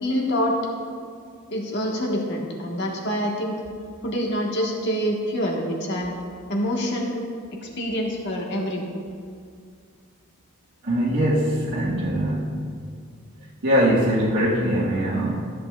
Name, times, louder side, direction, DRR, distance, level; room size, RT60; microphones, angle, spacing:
voice 1, 0.0-0.6 1.5-3.6 4.0-6.1 6.5-7.2 7.6-8.9, equal, 55° left, -1 dB, 1.4 m, -26 dB
voice 2, 10.8-12.5 13.6-15.5, equal, 60° right, -9 dB, 1.3 m, -22 dB
13.5 x 7.9 x 2.4 m, 2.2 s
head